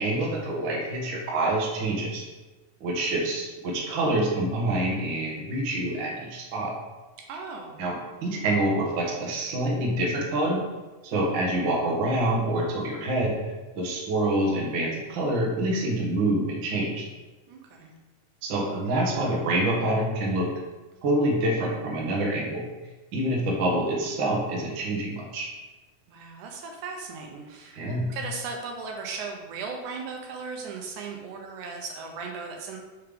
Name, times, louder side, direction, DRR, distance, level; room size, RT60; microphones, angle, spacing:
voice 1, 0.0-2.2 2.8-6.7 7.8-7.9 8.2-10.6 11.0-13.4 13.7-17.0 18.4-20.5 21.0-22.6 23.1-25.5 27.7-28.1, right 1 dB, 60° right, -2 dB, 1.3 m, -26 dB
voice 2, 7.2-7.8 17.5-17.9 26.1-32.8, right 4 dB, 75° right, 1 dB, 2.1 m, -37 dB
5.6 x 5.2 x 3.4 m, 1.1 s
omnidirectional pair, 3.8 m